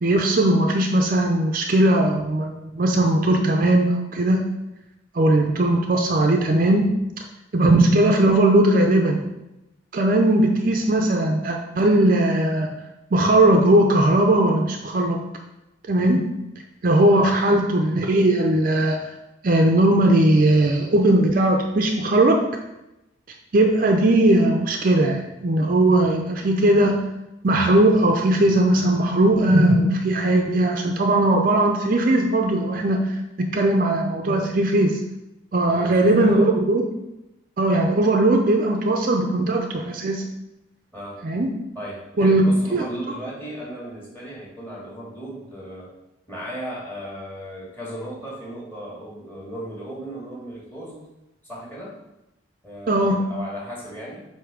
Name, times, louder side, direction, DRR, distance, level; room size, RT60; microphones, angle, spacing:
voice 1, 0.0-4.4 5.1-6.9 7.5-9.3 9.9-12.8 13.1-15.3 15.9-16.3 16.8-19.0 19.4-22.4 23.5-27.1 27.4-33.2 33.5-35.0 35.5-36.9 37.6-40.2 41.2-41.5 42.2-42.4 42.7-42.9 52.9-53.2, right 1 dB, 45° right, 3 dB, 0.5 m, -19 dB
voice 2, 35.7-36.5 40.9-41.2 41.8-45.9 46.3-51.0 51.4-52.0 52.6-54.3, equal, 10° left, -7 dB, 1.9 m, -36 dB
7.8 x 2.7 x 5.0 m, 0.93 s
head